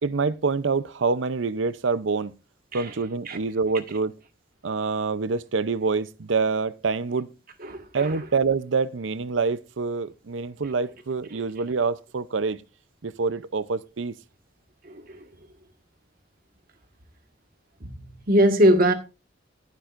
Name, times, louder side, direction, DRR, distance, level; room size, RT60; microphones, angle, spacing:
voice 1, 0.0-2.3 2.7-4.1 4.6-7.3 7.9-12.6 13.0-14.1, right 4 dB, 75° right, 0.7 m, -26 dB
voice 2, 7.7-8.1 17.8-17.9 18.3-18.9, equal, 50° right, 1.6 m, -20 dB
14.0 x 11.5 x 2.6 m
head